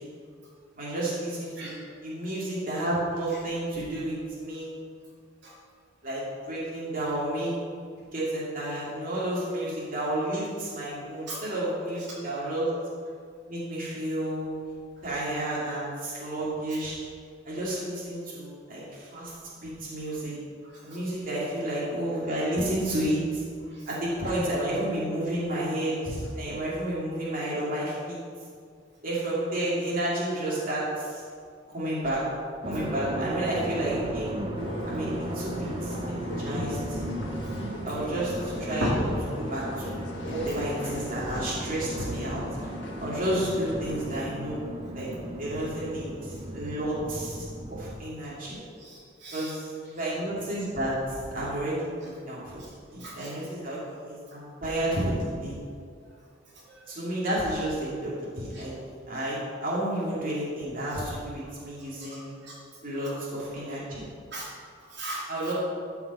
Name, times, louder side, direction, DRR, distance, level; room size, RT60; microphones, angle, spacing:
voice 1, 0.8-1.7 2.0-4.7 6.0-7.6 8.1-12.7 13.5-14.6 15.0-17.0 17.5-18.8 19.1-19.3 19.6-20.3 20.8-23.2 23.9-28.2 29.0-30.8 31.7-32.2 32.6-34.3 34.8-37.0 37.8-38.9 39.5-40.0 40.3-42.4 43.0-44.6 44.9-45.1 45.4-46.1 46.5-47.4 47.7-48.6 49.3-49.6 49.9-50.9 51.3-51.9 52.3-52.6 53.1-53.8 54.0-55.6 56.9-58.7 59.1-62.4 62.8-64.0 65.3-65.5, right 1 dB, 45° right, -7 dB, 2.7 m, -31 dB
sound 1, 32.6-48.0, right 1 dB, 30° right, 0.8 m, -35 dB
sound 2, 34.6-44.1, left 1 dB, 70° left, 1.5 m, -40 dB
voice 2, 48.6-49.5 53.0-53.3 56.8-56.9 58.5-58.6 62.0-62.6 63.0-63.1 64.3-64.5 64.9-65.3, equal, 60° right, -6 dB, 2.7 m, -35 dB
13.0 x 5.8 x 5.6 m, 2.1 s
head